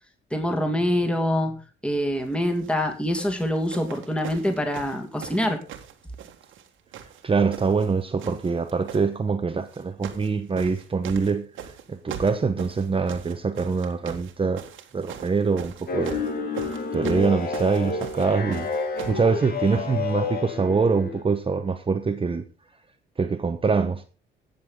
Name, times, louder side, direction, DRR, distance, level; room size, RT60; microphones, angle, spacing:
voice 1, 0.3-1.6 1.8-5.6, left 1 dB, 5° left, 2.2 m, -25 dB
sound 1, 2.5-2.8 3.2-6.7 6.9-7.9 8.2-9.0 9.7-10.3 10.6-19.3 20.1-20.2, right 9 dB, 85° right, 1.7 m, -40 dB
voice 2, 7.2-11.5 11.9-14.6 14.9-16.2 16.9-18.7 19.1-22.4 23.2-24.0, right 4 dB, 25° right, 0.9 m, -24 dB
sound 2, 15.9-21.2, left 4 dB, 50° left, 1.9 m, -30 dB
17.0 x 6.9 x 3.7 m
cardioid pair, 90°, 20 cm